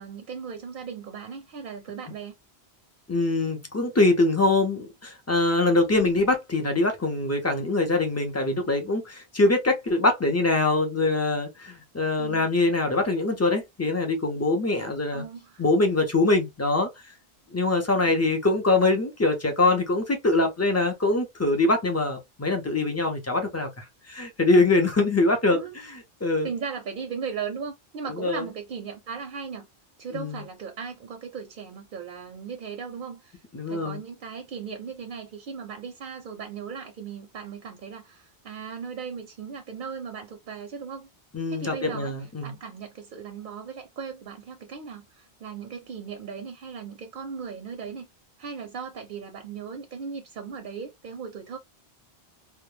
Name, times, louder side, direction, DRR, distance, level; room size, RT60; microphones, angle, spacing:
voice 1, 0.0-2.3 12.2-12.5 15.1-15.6 18.0-18.2 25.5-25.7 26.4-29.7 30.0-33.4 33.7-41.1 41.5-48.1 48.4-51.6, right 6 dB, 60° right, 0.6 m, -37 dB
voice 2, 3.1-15.3 15.6-16.9 17.5-26.5 28.1-28.4 30.1-30.4 33.5-34.0 41.3-42.5, left 2 dB, 25° left, 0.4 m, -23 dB
2.2 x 2.1 x 3.1 m
omnidirectional pair, 1.1 m